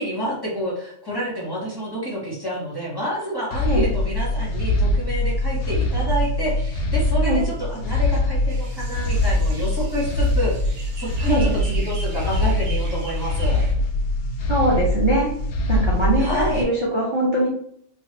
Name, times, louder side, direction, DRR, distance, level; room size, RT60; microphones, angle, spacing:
voice 1, 0.0-13.6 16.2-16.7, equal, 20° left, -6 dB, 0.7 m, -28 dB
sound 1, 3.5-16.6, left 1 dB, 65° left, 0.6 m, -23 dB
sound 2, 8.5-13.7, right 2 dB, 80° right, 1.2 m, -41 dB
voice 2, 14.5-15.3 15.7-17.5, right 1 dB, 40° right, -5 dB, 0.4 m, -22 dB
3.2 x 2.3 x 2.8 m, 0.68 s
omnidirectional pair, 1.4 m